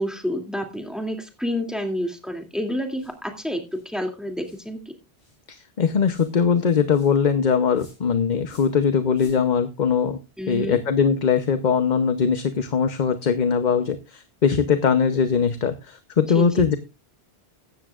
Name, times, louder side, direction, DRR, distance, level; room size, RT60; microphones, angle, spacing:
voice 1, 0.0-4.8 10.4-10.8 16.3-16.5, equal, ahead, 4 dB, 2.5 m, -29 dB
sound 1, 3.0-3.2 3.7-3.9 4.4-4.7 5.2-5.4 6.1-6.4 6.9-7.2 7.7-8.0 8.5-8.8 9.1-9.4, left 1 dB, 80° left, 7.8 m, -50 dB
voice 2, 5.5-10.2 10.5-16.8, left 6 dB, 50° left, 10 dB, 0.9 m, -21 dB
16.0 x 12.5 x 2.4 m, 0.27 s
omnidirectional pair, 1.1 m